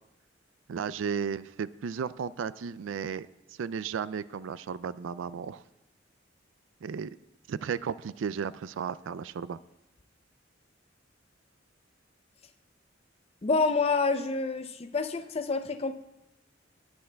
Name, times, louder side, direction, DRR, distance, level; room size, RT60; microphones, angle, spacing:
voice 1, 0.7-3.3 3.6-5.6 6.8-7.2 7.5-9.6, right 6 dB, 85° right, 17 dB, 0.4 m, -34 dB
voice 2, 13.4-15.9, left 4 dB, 35° left, 9 dB, 0.5 m, -27 dB
19.5 x 8.8 x 2.3 m, 0.90 s
head